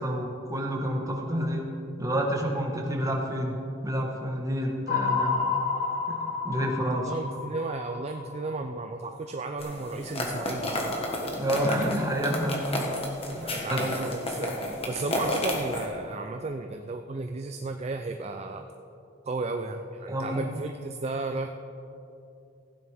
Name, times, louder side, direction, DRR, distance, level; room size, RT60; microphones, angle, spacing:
voice 1, 0.0-1.6 2.0-5.5 6.1-6.2 6.4-7.1 11.4-12.9 13.3-13.8 20.1-20.4, right 1 dB, 20° right, 0 dB, 1.4 m, -29 dB
sound 1, 4.9-9.1, left 4 dB, 50° left, 1.6 m, -30 dB
voice 2, 6.9-11.0 13.4-18.7 19.3-21.5, right 3 dB, 35° right, 6 dB, 0.4 m, -34 dB
sound 2, 9.6-15.9, left 1 dB, 30° left, 1.4 m, -32 dB
15.5 x 9.6 x 3.5 m, 2.8 s
head